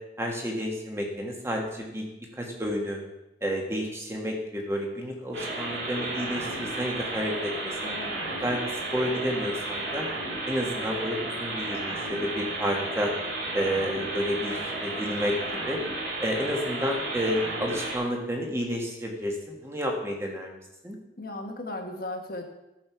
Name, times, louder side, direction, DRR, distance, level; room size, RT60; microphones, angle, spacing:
voice 1, 0.2-2.0 2.3-3.0 3.4-8.0 8.4-8.6 8.9-10.0 10.5-13.1 13.5-15.4 15.7-15.8 16.2-20.6 20.8-21.0, equal, 15° right, 0 dB, 1.6 m, -30 dB
sound 1, 5.3-18.0, right 2 dB, 90° right, 3.4 m, -33 dB
voice 2, 7.8-8.4 21.2-22.4, left 2 dB, 50° left, 3 dB, 1.4 m, -37 dB
13.0 x 6.7 x 4.6 m, 0.93 s
head